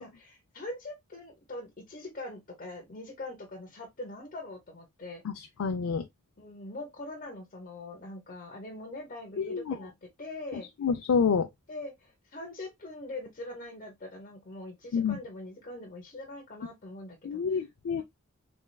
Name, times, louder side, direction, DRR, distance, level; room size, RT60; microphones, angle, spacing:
voice 1, 0.0-5.2 6.4-10.7 11.7-17.7 18.0-18.1, left 2 dB, 40° left, 0.9 m, -42 dB
voice 2, 5.6-6.0 9.4-9.7 10.8-11.5 14.9-15.2 17.2-18.0, left 6 dB, 80° left, 0.4 m, -27 dB
3.4 x 3.3 x 2.2 m
head